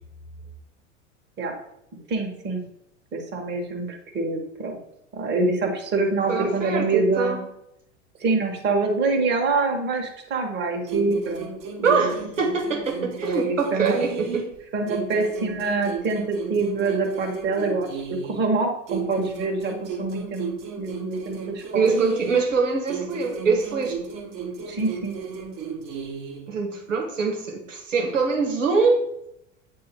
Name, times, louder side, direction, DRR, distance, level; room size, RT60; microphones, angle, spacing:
voice 1, 2.1-2.6 3.1-4.8 5.1-7.4 8.2-11.5 11.8-12.1 13.2-14.0 14.7-20.5 20.8-22.0 24.7-25.2, right 3 dB, 30° right, 2 dB, 1.3 m, -25 dB
voice 2, 6.3-7.4 11.8-14.5 21.7-24.0 26.5-29.0, right 4 dB, 85° right, 2 dB, 1.3 m, -23 dB
sound 1, 10.9-14.6 14.9-18.5 18.9-22.6 22.9-26.5, right 5 dB, 45° right, 1.3 m, -34 dB
8.2 x 2.8 x 4.4 m, 0.80 s
hypercardioid pair, 90°, 37 cm